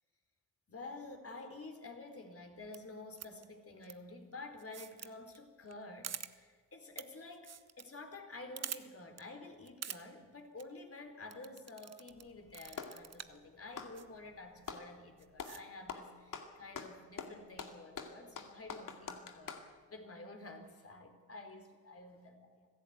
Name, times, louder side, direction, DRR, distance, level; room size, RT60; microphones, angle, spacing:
voice 1, 0.7-22.7, left 2 dB, 35° left, 5 dB, 4.4 m, -50 dB
sound 1, 2.6-2.8 3.2-3.4 3.8-3.9 4.6-5.1 5.3-5.4 5.7-5.8 6.0-6.3 7.0-7.1 7.3-7.8 8.1-8.2 8.6-8.8 9.2-9.3 9.7-10.0 10.4-10.6 11.3-12.2 12.5-13.4 14.0-14.1 14.6-14.8 15.2-15.6, right 8 dB, 40° right, 1.3 m, -45 dB
Clapping, 12.1-13.0 13.6-14.9 15.4-15.6 15.9-19.7, left 6 dB, 50° left, 2.4 m, -45 dB
25.0 x 16.0 x 8.1 m, 1.5 s
hypercardioid pair, 45°, 40 cm